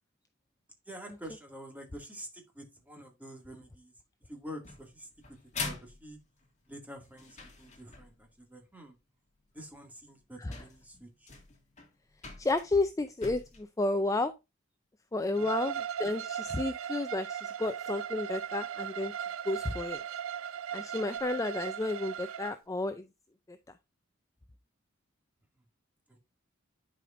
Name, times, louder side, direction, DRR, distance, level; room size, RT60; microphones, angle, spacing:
voice 1, 0.9-3.9 4.3-5.1 5.6-6.2 6.7-8.9 9.5-11.3 15.2-15.5 26.1-26.2, equal, 10° right, 2.1 m, -47 dB
sound 1, 4.6-8.3 9.6-9.7 10.2-10.3 10.5-13.6, left 4 dB, 35° left, 2.1 m, -44 dB
voice 2, 12.4-14.3 15.1-19.1 19.5-20.0 20.7-23.0 23.5-23.6, left 2 dB, 15° left, 0.4 m, -32 dB
Bowed string instrument, 15.4-22.5, right 9 dB, 90° right, 0.5 m, -37 dB
11.0 x 5.0 x 2.5 m
head